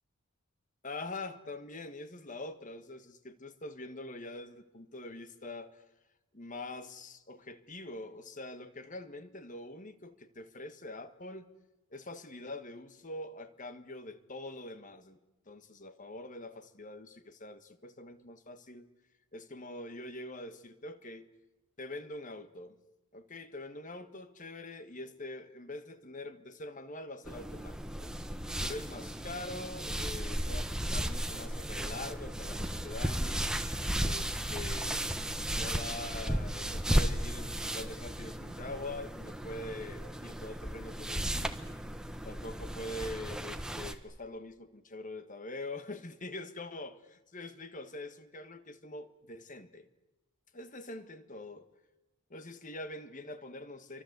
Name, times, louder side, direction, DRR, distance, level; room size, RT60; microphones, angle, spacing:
voice 1, 0.8-5.8 6.3-11.5 11.9-15.2 15.5-18.9 19.3-21.3 21.8-22.8 23.1-28.1 28.6-33.5 34.0-41.6 42.2-46.9 47.3-49.9 50.5-51.7 52.3-54.0, left 2 dB, 35° left, 1.6 m, -44 dB
sound 1, 27.3-43.9, right 1 dB, 5° right, 1.2 m, -35 dB
28.5 x 24.5 x 8.2 m
head